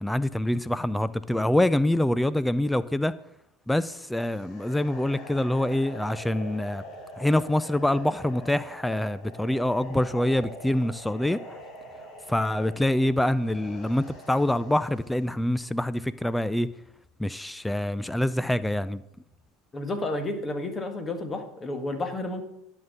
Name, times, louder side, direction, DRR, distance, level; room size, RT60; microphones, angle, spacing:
voice 1, 0.0-3.1 3.7-6.8 7.2-11.4 12.3-16.7 17.2-19.0, left 1 dB, 5° left, 0.4 m, -25 dB
sound 1, 4.2-15.4, equal, 45° left, 2.8 m, -44 dB
voice 2, 19.7-22.4, left 2 dB, 25° left, 1.7 m, -31 dB
10.5 x 5.7 x 6.6 m
hypercardioid pair, 75°, 0 cm